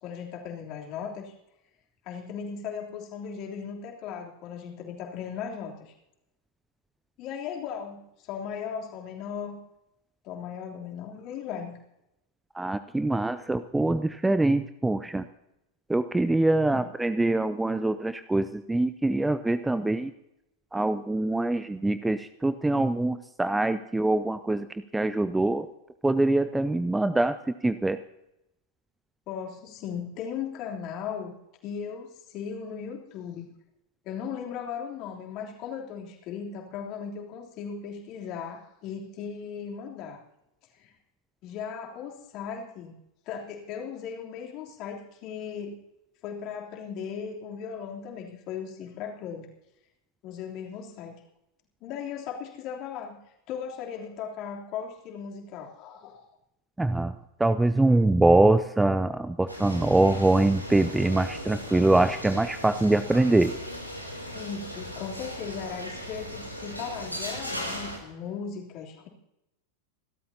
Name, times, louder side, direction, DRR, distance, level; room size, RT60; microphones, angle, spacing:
voice 1, 0.0-1.3 2.0-5.9 7.2-9.6 10.2-11.8 16.7-16.9 29.3-31.3 31.6-33.4 34.0-40.2 40.7-41.0 41.4-42.9 43.3-45.8 46.2-49.5 50.2-51.2 51.8-53.2 53.5-56.2 64.3-69.1, left 7 dB, 40° left, 1 dB, 3.2 m, -37 dB
voice 2, 12.5-15.3 15.9-20.1 20.7-24.7 24.9-25.7 26.0-28.0 56.8-57.1 57.4-63.6, right 2 dB, 5° right, 12 dB, 0.5 m, -24 dB
sound 1, 59.5-68.0, equal, 90° right, 2.9 m, -38 dB
27.5 x 13.0 x 2.8 m, 0.85 s
figure-of-eight pair, 90°, 0 cm